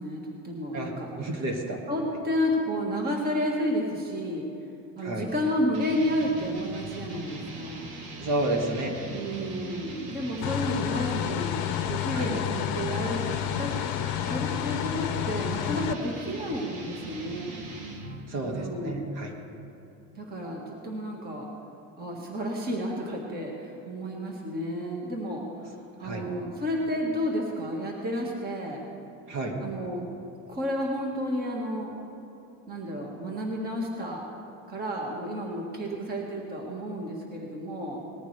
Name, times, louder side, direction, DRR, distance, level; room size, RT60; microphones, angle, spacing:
voice 1, 0.0-1.4 1.9-4.5 5.0-7.9 9.1-11.5 11.9-13.2 13.6-13.7 14.3-17.6 18.4-19.1 20.1-21.5 22.0-28.8 29.6-30.1 30.5-32.0 32.7-34.3 34.7-38.0, equal, 25° right, -1 dB, 1.7 m, -31 dB
voice 2, 1.2-1.8 5.0-5.3 8.2-8.9 12.1-12.3 18.3-19.3 26.0-26.2 29.3-29.6, right 1 dB, 55° right, 1 dB, 2.2 m, -30 dB
sound 1, 5.7-18.3, right 2 dB, 80° right, 2.2 m, -40 dB
sound 2, 10.4-15.9, left 12 dB, 60° left, 0.7 m, -30 dB
20.0 x 14.0 x 3.4 m, 2.8 s
cardioid pair, 145°, 39 cm